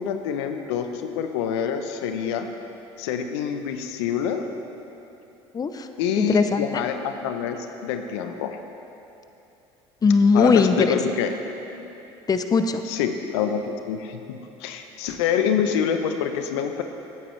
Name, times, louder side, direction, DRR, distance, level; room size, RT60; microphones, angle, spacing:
voice 1, 0.0-2.5 3.0-4.4 6.0-8.6 10.3-11.3 11.7-11.8 12.8-16.8, left 8 dB, 80° left, 7 dB, 0.7 m, -26 dB
voice 2, 5.5-5.9 6.2-6.7 10.0-10.8 12.3-12.8, left 5 dB, 25° left, 8 dB, 0.6 m, -19 dB
16.5 x 8.9 x 3.2 m, 2.8 s
hypercardioid pair, 70°, 14 cm